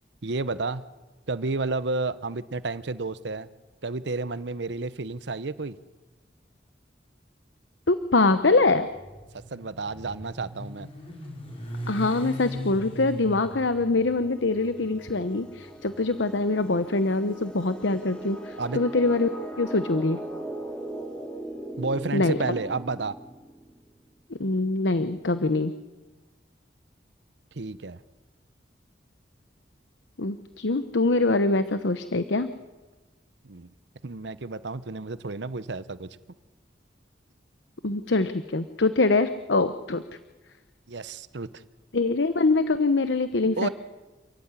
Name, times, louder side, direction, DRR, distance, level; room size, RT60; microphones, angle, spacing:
voice 1, 0.2-0.8 1.3-3.5 3.8-5.8 9.5-10.9 18.6-18.8 21.8-23.1 27.5-28.0 33.4-33.7 34.0-36.2 40.9-41.6 43.6-43.7, right 3 dB, 80° right, 15 dB, 0.9 m, -31 dB
voice 2, 7.9-8.9 11.9-20.2 22.1-22.4 24.3-25.7 30.2-32.5 37.8-40.0 41.9-43.7, left 3 dB, 90° left, 11 dB, 1.0 m, -24 dB
Motorcycle, 8.6-16.8, equal, 30° left, 5.6 m, -39 dB
sound 1, 13.3-23.8, right 1 dB, 5° left, 2.9 m, -40 dB
28.5 x 14.5 x 9.8 m, 1.2 s
head